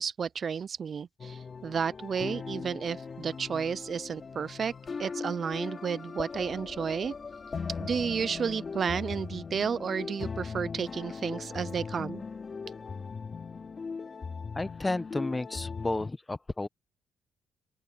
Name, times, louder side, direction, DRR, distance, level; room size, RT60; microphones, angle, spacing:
voice 1, 0.0-4.7 5.0-7.1 7.8-12.2, right 6 dB, 45° right, 0.3 m, -32 dB
sound 1, 1.2-16.1, left 5 dB, 40° left, 2.7 m, -39 dB
voice 2, 14.5-16.7, left 2 dB, 15° left, 0.8 m, -32 dB
open air
cardioid pair, 90°, 0 cm